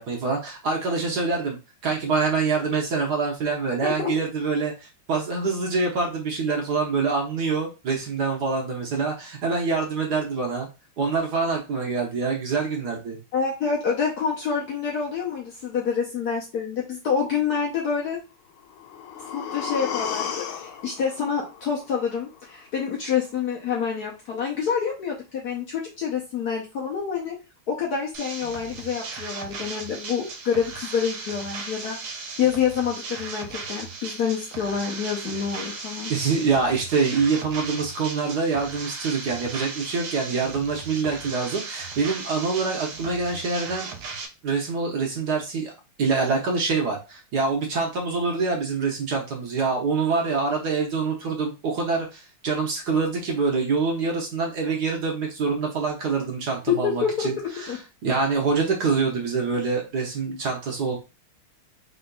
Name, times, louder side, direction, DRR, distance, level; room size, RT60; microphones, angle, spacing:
voice 1, 0.0-10.7 11.0-13.2 35.3-35.4 36.1-43.9 44.4-45.7 46.0-57.7 58.0-61.0, right 4 dB, 60° right, 0 dB, 1.3 m, -25 dB
voice 2, 3.8-4.1 13.3-18.2 19.3-27.3 27.7-32.0 32.4-36.1 56.7-57.8, left 7 dB, 60° left, -2 dB, 1.0 m, -27 dB
sound 1, 18.6-22.6 22.9-23.0, left 7 dB, 75° left, 1.5 m, -34 dB
sound 2, 28.1-44.3, right 4 dB, 85° right, 1.6 m, -37 dB
3.9 x 3.9 x 2.2 m, 0.28 s
omnidirectional pair, 2.3 m